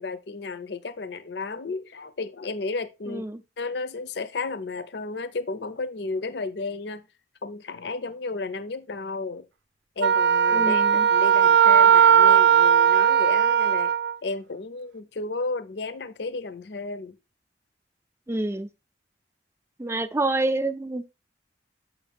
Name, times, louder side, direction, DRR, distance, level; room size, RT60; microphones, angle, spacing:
voice 1, 0.0-3.2 3.6-7.1 7.4-9.5 10.0-13.9 14.2-17.2, left 3 dB, 65° left, 0.6 m, -33 dB
voice 2, 3.1-3.4 10.5-11.1 18.3-18.7 19.8-21.2, right 2 dB, 15° right, 0.5 m, -28 dB
Wind instrument woodwind instrument, 10.0-14.1, right 8 dB, 75° right, 0.4 m, -18 dB
7.2 x 5.1 x 3.4 m
head